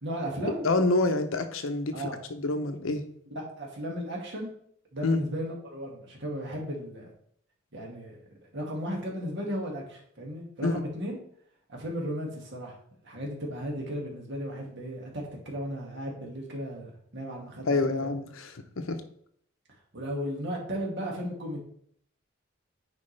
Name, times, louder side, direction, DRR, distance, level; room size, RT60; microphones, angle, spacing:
voice 1, 0.0-0.7 1.9-2.2 3.3-4.5 4.9-7.1 7.7-8.2 8.5-11.2 11.7-12.8 13.0-18.1 19.9-21.6, equal, 60° right, -1 dB, 2.1 m, -35 dB
voice 2, 0.6-2.0 2.3-3.0 5.0-5.2 10.6-10.8 17.7-19.0, left 2 dB, 80° left, 7 dB, 0.9 m, -27 dB
9.5 x 4.8 x 3.4 m, 0.65 s
head